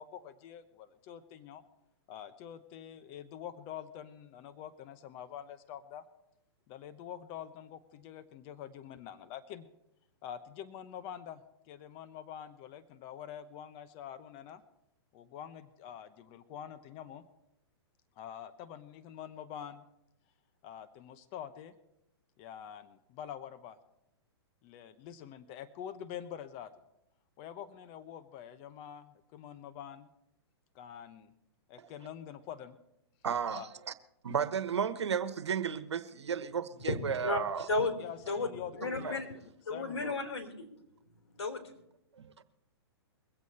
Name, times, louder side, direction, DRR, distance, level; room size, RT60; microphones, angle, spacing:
voice 1, 0.0-1.6 2.1-6.0 6.7-9.7 10.2-14.6 15.1-17.2 18.2-19.8 20.6-21.7 22.4-23.8 24.6-26.7 27.4-30.1 30.7-31.3 31.7-32.8 33.5-33.7 38.0-39.2 39.7-40.2, left 9 dB, 35° left, 0.9 m, -46 dB
voice 2, 33.2-33.9 34.2-37.7 39.0-39.1, right 7 dB, 85° right, 1.2 m, -33 dB
voice 3, 36.9-37.4 37.7-37.9 38.3-38.5 38.8-39.2 39.7-40.7 41.4-41.6, left 3 dB, 80° left, 3.3 m, -33 dB
23.0 x 8.3 x 4.2 m
hypercardioid pair, 130°, 14 cm